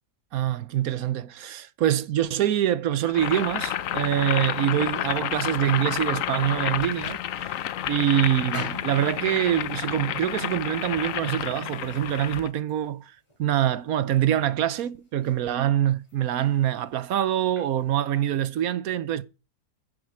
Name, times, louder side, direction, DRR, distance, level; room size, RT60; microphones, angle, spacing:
voice 1, 0.3-7.6 7.9-13.1 13.4-19.2, right 11 dB, 65° right, 1.1 m, -25 dB
Boiling, 3.1-12.5, left 11 dB, 65° left, 0.9 m, -30 dB
sound 1, 4.4-18.7, left 1 dB, 15° left, 3.0 m, -49 dB
9.9 x 7.6 x 4.8 m
omnidirectional pair, 1.7 m